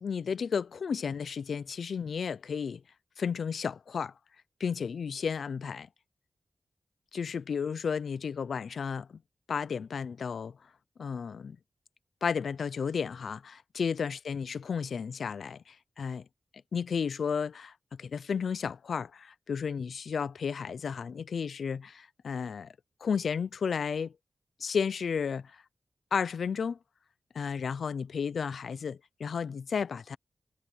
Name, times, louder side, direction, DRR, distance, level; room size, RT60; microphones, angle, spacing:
voice 1, 0.0-2.8 3.2-4.1 4.6-5.9 7.1-9.2 9.5-10.6 11.0-11.6 12.2-16.2 16.7-17.7 18.0-22.7 23.0-24.1 24.6-25.6 26.1-26.8 27.3-30.2, left 6 dB, 85° left, 0.5 m, -33 dB
wide cardioid pair, 150°, 0 cm